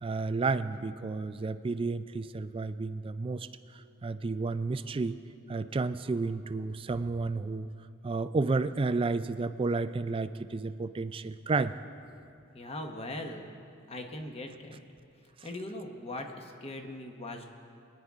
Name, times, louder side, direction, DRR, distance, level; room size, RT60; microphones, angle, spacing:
voice 1, 0.0-3.5 4.0-5.2 5.5-7.7 8.0-11.7, right 3 dB, 25° right, 12 dB, 0.3 m, -31 dB
voice 2, 12.5-13.5 13.9-14.8 15.4-17.5, left 1 dB, 30° left, 4 dB, 1.0 m, -40 dB
22.5 x 10.0 x 3.6 m, 2.5 s
head